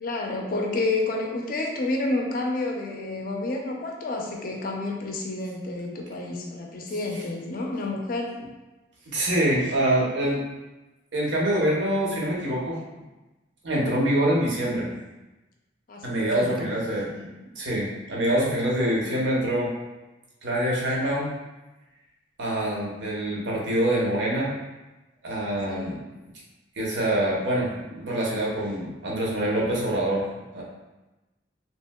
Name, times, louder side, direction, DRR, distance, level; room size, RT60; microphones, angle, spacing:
voice 1, 0.0-8.4 15.9-16.7 25.7-26.1, left 2 dB, 50° left, 1 dB, 0.4 m, -30 dB
voice 2, 9.1-10.4 11.1-12.8 13.6-14.9 16.0-17.3 17.6-19.7 20.4-21.3 22.4-24.5 25.2-26.0 26.7-30.3 30.5-30.6, right 1 dB, 75° right, -4 dB, 0.8 m, -25 dB
3.0 x 2.7 x 2.2 m, 1.1 s
head